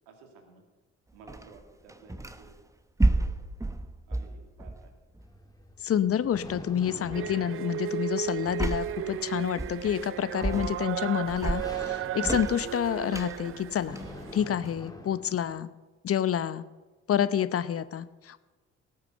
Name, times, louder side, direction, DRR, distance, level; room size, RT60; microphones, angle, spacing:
voice 1, 0.1-0.6 1.1-2.6 3.0-3.3 4.1-4.9, right 4 dB, 75° right, 4 dB, 2.4 m, -54 dB
sound 1, 1.3-2.6 3.0-5.4 6.4-6.7 7.1-7.4 8.5-9.1 9.6-10.1 10.4-11.0 11.3-14.9, right 2 dB, 10° right, 1.0 m, -31 dB
sound 2, 5.2-15.6, left 2 dB, 10° left, 2.2 m, -47 dB
voice 2, 5.8-14.0 14.3-15.7 16.0-16.6 17.1-18.4, left 9 dB, 40° left, 15 dB, 0.8 m, -28 dB
sound 3, 7.1-14.4, right 11 dB, 35° right, 0.4 m, -35 dB
18.0 x 6.9 x 7.9 m, 1.2 s
hypercardioid pair, 50°, 37 cm